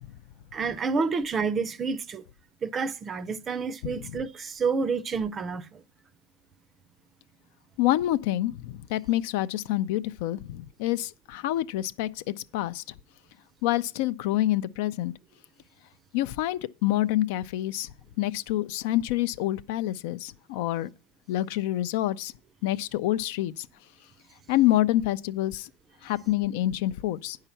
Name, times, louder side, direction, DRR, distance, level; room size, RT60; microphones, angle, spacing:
voice 1, 0.5-2.2 2.6-5.8, right 5 dB, 25° right, 0.5 m, -29 dB
voice 2, 7.8-12.2 12.5-12.8 13.6-15.1 16.1-20.9 21.3-22.3 22.6-23.7 24.5-25.7 26.0-27.4, left 14 dB, 65° left, 0.5 m, -27 dB
9.1 x 5.7 x 5.6 m
supercardioid pair, 130°, 0 cm